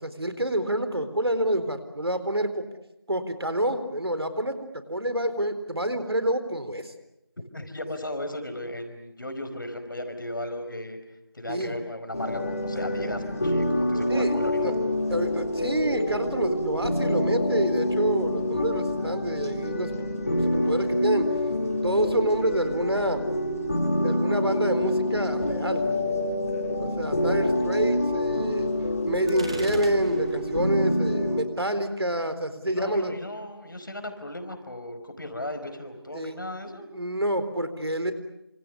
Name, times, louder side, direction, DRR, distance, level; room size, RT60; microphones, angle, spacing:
voice 1, 0.0-2.7 3.1-6.9 11.5-11.7 14.1-14.7 15.1-19.9 20.3-21.3 21.8-23.2 24.0-25.8 26.8-28.7 29.0-33.2 36.1-36.3 36.9-38.1, right 1 dB, 70° right, 10 dB, 4.1 m, -27 dB
voice 2, 7.5-11.0 11.3-14.6 32.7-36.9, left 1 dB, 50° left, 8 dB, 4.9 m, -36 dB
sound 1, 12.1-31.4, left 1 dB, 35° left, 3.9 m, -27 dB
Gunshot gunfire, 29.3-30.5, right 2 dB, 15° right, 1.2 m, -38 dB
28.5 x 27.0 x 6.9 m, 0.86 s
figure-of-eight pair, 170°, 14 cm